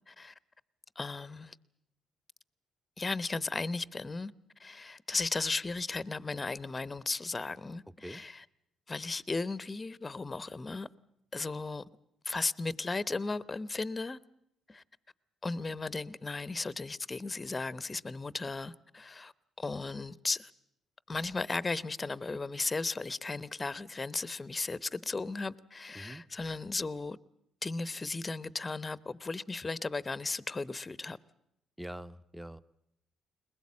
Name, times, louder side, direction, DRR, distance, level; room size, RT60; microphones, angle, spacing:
voice 1, 1.0-1.6 3.0-4.3 4.6-8.5 8.9-10.9 11.3-11.8 12.2-14.2 14.7-14.8 15.4-20.5 21.1-27.2 27.6-31.2, left 3 dB, 25° left, 0.8 m, -36 dB
voice 2, 31.8-32.6, right 1 dB, 5° right, 0.8 m, -44 dB
22.0 x 20.5 x 8.5 m
cardioid pair, 90°, 0 cm